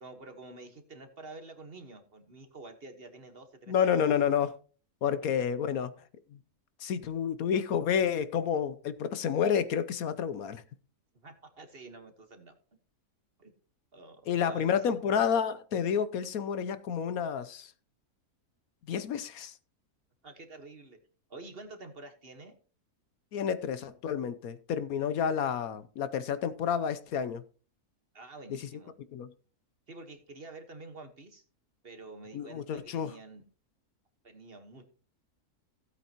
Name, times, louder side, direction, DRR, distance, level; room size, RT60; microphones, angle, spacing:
voice 1, 0.0-4.2 11.2-12.5 13.4-13.5 13.9-15.0 20.2-21.0 21.3-22.5 28.1-28.9 29.9-31.4 31.8-33.4 34.2-34.8, right 2 dB, 40° right, 1.5 m, -48 dB
voice 2, 3.7-4.6 5.0-5.9 6.3-6.4 6.8-10.6 14.3-17.7 18.9-19.5 23.3-27.4 28.5-28.7 29.1-29.3 32.3-33.2, left 7 dB, 70° left, 1.1 m, -30 dB
16.0 x 8.5 x 2.9 m
omnidirectional pair, 1.7 m